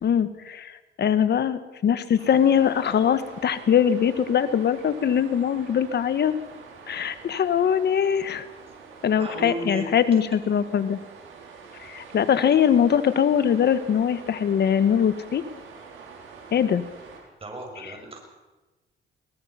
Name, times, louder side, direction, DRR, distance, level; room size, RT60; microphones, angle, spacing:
voice 1, 0.0-6.3 6.9-8.4 9.0-11.0 11.8-15.4 16.5-16.8 17.8-17.9, left 8 dB, 60° left, 13 dB, 1.5 m, -22 dB
sound 1, 2.2-17.2, right 5 dB, 80° right, 5.5 m, -46 dB
voice 2, 9.2-9.9 17.4-18.2, right 2 dB, 30° right, 2 dB, 7.0 m, -34 dB
22.5 x 19.5 x 5.8 m, 1.1 s
cardioid pair, 90°, 20 cm